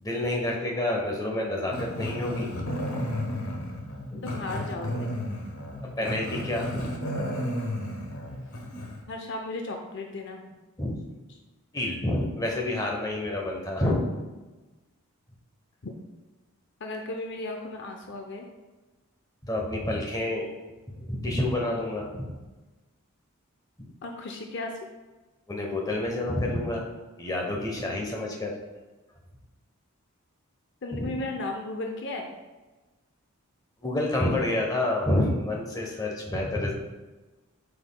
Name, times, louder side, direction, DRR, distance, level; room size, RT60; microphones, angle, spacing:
voice 1, 0.0-2.7 4.1-4.2 5.8-6.9 8.2-8.3 10.8-11.0 11.7-14.0 19.4-20.5 21.0-22.3 23.8-23.9 25.5-26.9 27.2-28.5 30.9-31.1 33.8-36.7, left 1 dB, 15° left, 0 dB, 0.8 m, -28 dB
Growling, 1.7-9.0, equal, 70° left, 1.1 m, -33 dB
voice 2, 4.2-5.1 9.1-10.5 16.8-18.5 24.0-24.7 30.8-32.3, left 2 dB, 50° left, 3 dB, 0.6 m, -35 dB
7.9 x 5.6 x 2.2 m, 1.2 s
head